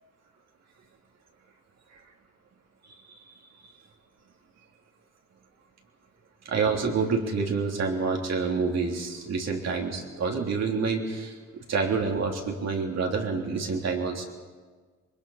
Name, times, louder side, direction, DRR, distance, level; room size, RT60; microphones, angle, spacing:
voice 1, 6.5-11.3 11.7-14.2, right 4 dB, 60° right, 0 dB, 3.3 m, -27 dB
22.0 x 21.0 x 5.8 m, 1.5 s
cardioid pair, 90°, 30 cm